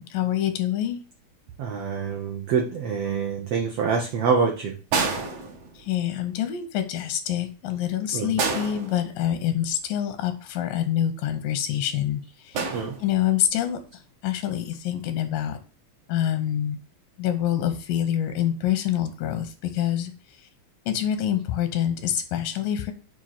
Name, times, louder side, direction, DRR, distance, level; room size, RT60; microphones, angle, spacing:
voice 1, 0.1-1.0 5.9-12.2 13.0-13.8 14.2-15.6 16.1-16.8 17.2-20.1 20.9-22.9, left 11 dB, 85° left, 8 dB, 2.4 m, -26 dB
voice 2, 1.6-4.8 8.1-8.4 12.7-13.0, right 5 dB, 80° right, 1 dB, 1.4 m, -26 dB
sound 1, 4.9-6.1 8.4-9.6 12.5-13.5 14.7-15.0, right 4 dB, 60° right, 1.8 m, -29 dB
7.1 x 2.6 x 5.7 m, 0.36 s
omnidirectional pair, 3.9 m